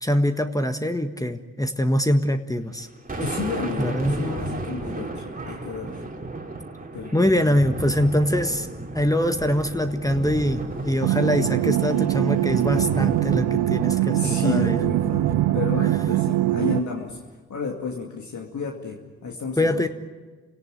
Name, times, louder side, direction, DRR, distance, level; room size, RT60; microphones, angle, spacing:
voice 1, 0.0-2.9 3.8-4.1 7.1-8.7 8.9-14.1 14.4-14.8 19.6-19.9, equal, 10° left, 8 dB, 1.5 m, -23 dB
Thunder, 2.7-17.3, right 2 dB, 20° right, 2.9 m, -34 dB
voice 2, 3.2-6.0 6.9-7.6 14.1-17.2 17.5-19.9, left 5 dB, 50° left, 2 dB, 2.3 m, -31 dB
sound 1, 11.0-16.8, right 15 dB, 70° right, 0.8 m, -22 dB
28.0 x 17.5 x 9.1 m, 1.3 s
hypercardioid pair, 40°, 37 cm